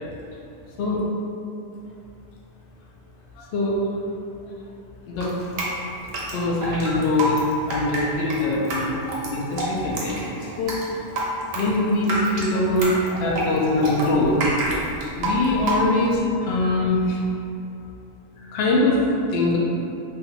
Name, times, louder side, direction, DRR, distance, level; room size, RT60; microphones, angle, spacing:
voice 1, 3.4-3.8 5.1-5.3 6.0-9.0 9.3-10.8 11.5-14.4 15.2-17.2 18.4-19.0 19.3-19.6, left 2 dB, 65° left, -3 dB, 0.6 m, -23 dB
Drip, 5.2-16.2, right 1 dB, 75° right, 1.0 m, -28 dB
2.6 x 2.2 x 3.8 m, 2.8 s
omnidirectional pair, 1.4 m